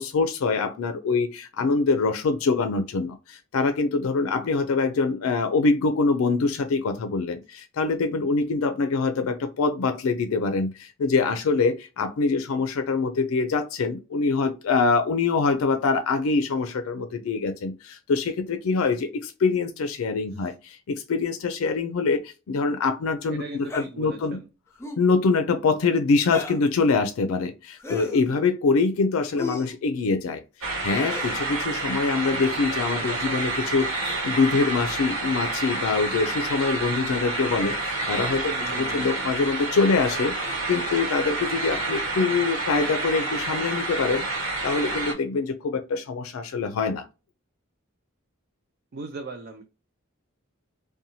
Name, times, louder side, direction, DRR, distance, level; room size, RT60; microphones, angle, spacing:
voice 1, 0.0-24.4 25.0-44.2 44.6-47.0, left 4 dB, 90° left, 0.4 m, -24 dB
voice 2, 23.3-24.5 32.7-33.5 38.4-39.2 48.9-49.6, right 3 dB, 50° right, 0.4 m, -39 dB
sound 1, 23.6-23.9 24.7-25.1 26.2-26.7 27.8-28.3 29.3-29.8 31.0-31.4 32.7-33.0 34.1-34.3 35.2-35.7 37.4-37.5 38.6-38.7 39.4-39.6 40.4-40.6 42.1-42.5, left 3 dB, 15° left, 0.5 m, -37 dB
sound 2, 30.6-45.1, right 2 dB, 75° right, 1.1 m, -29 dB
2.6 x 2.2 x 2.8 m
head